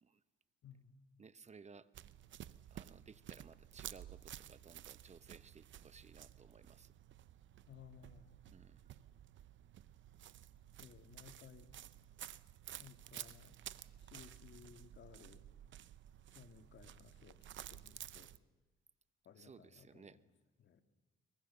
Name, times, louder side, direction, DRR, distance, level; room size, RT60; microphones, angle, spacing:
voice 1, 0.6-0.9 7.7-8.3 10.8-11.7 12.8-13.6 14.0-15.4 16.3-18.3 19.3-20.2 20.6-20.8, left 8 dB, 60° left, 7 dB, 1.9 m, -59 dB
voice 2, 1.2-1.9 2.7-6.9 8.5-8.8 19.3-20.2, right 5 dB, 35° right, 14 dB, 0.9 m, -59 dB
sound 1, 1.9-18.4, right 11 dB, 65° right, 0.7 m, -53 dB
22.5 x 21.5 x 6.8 m, 1.1 s
cardioid pair, 90°, 21 cm